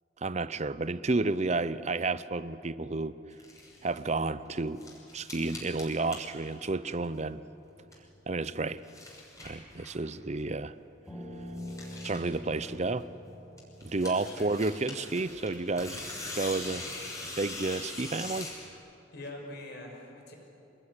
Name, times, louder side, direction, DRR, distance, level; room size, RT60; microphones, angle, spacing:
voice 1, 0.2-3.1 3.8-4.8 5.1-7.4 8.3-8.8 9.4-10.7 12.0-13.1 13.8-16.0 16.3-16.9 17.4-18.5, right 3 dB, 35° right, 15 dB, 0.7 m, -31 dB
sound 1, 3.3-4.0 4.4-7.3 7.5-8.2 8.6-10.1 10.4-10.5 10.8-10.9 11.0-11.1 11.4-13.1 13.6-18.7, left 2 dB, 20° left, 6.2 m, -43 dB
Piano, 11.1-16.3, left 1 dB, ahead, 6.0 m, -46 dB
voice 2, 13.9-14.5 19.1-20.3, left 1 dB, 60° left, 2 dB, 5.8 m, -44 dB
26.5 x 21.0 x 9.9 m, 2.8 s
head